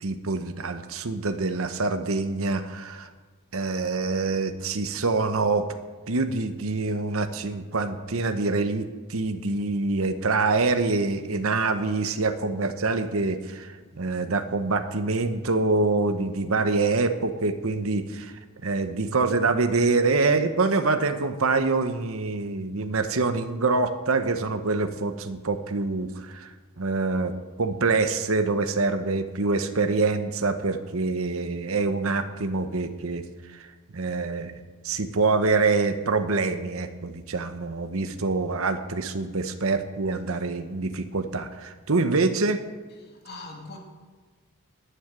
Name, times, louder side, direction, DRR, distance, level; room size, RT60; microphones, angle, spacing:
voice 1, 0.0-3.1 3.5-5.6 6.1-18.3 18.6-27.3 27.6-33.2 33.5-33.7 33.9-34.6 34.8-42.6, right 3 dB, 70° right, 1.0 m, -25 dB
voice 2, 43.0-43.8, left 3 dB, 45° left, 2.2 m, -42 dB
11.0 x 9.7 x 9.0 m
head